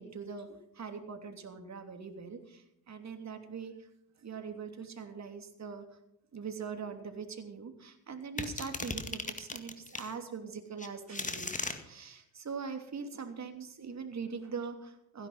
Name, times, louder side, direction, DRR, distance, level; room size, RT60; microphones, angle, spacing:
voice 1, 0.0-3.7 4.2-5.8 6.3-11.5 11.8-15.3, right 5 dB, 35° right, 6 dB, 3.1 m, -42 dB
sound 1, 8.4-10.1 10.8-11.8, left 3 dB, 15° left, 2.0 m, -37 dB
16.0 x 11.0 x 5.7 m, 0.80 s
supercardioid pair, 80°, 44 cm